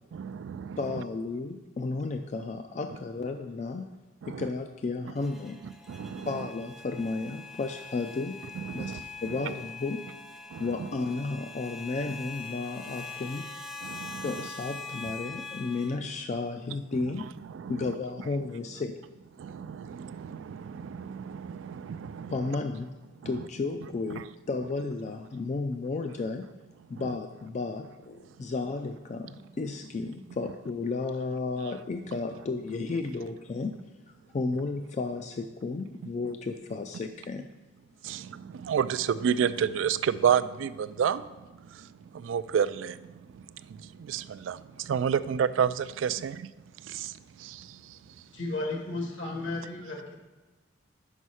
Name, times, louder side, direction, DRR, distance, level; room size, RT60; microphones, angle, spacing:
voice 1, 0.1-0.8 4.2-4.4 5.9-6.3 8.7-9.0 10.5-10.9 13.8-14.3 17.5-17.8 19.4-22.4 38.0-41.3 41.7-41.9 42.1-46.5 46.8-48.0, right 7 dB, 80° right, 0.3 m, -30 dB
voice 2, 0.8-3.9 4.3-5.6 6.3-8.4 8.7-10.1 10.6-13.5 14.2-17.4 17.7-19.0 22.3-22.9 23.2-26.5 26.9-33.8 34.1-37.5 46.1-46.2, left 3 dB, 35° left, 0.3 m, -33 dB
sound 1, 5.2-16.0, left 4 dB, ahead, 0.6 m, -43 dB
voice 3, 48.0-50.2, left 2 dB, 75° left, 1.6 m, -35 dB
5.5 x 5.5 x 6.2 m
head